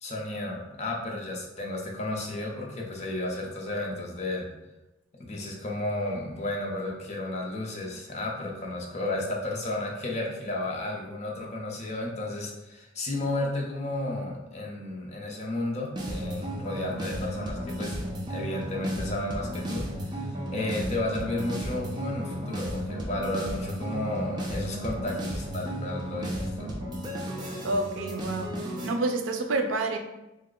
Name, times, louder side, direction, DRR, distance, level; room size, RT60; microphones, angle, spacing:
voice 1, 0.0-4.5 5.2-18.0 18.3-26.7, left 2 dB, 35° left, -1 dB, 0.6 m, -33 dB
sound 1, 16.0-28.9, equal, 25° right, 0.4 m, -34 dB
voice 2, 27.6-28.5 28.8-30.0, right 2 dB, 90° right, 5 dB, 0.4 m, -28 dB
3.2 x 2.1 x 3.7 m, 0.96 s
head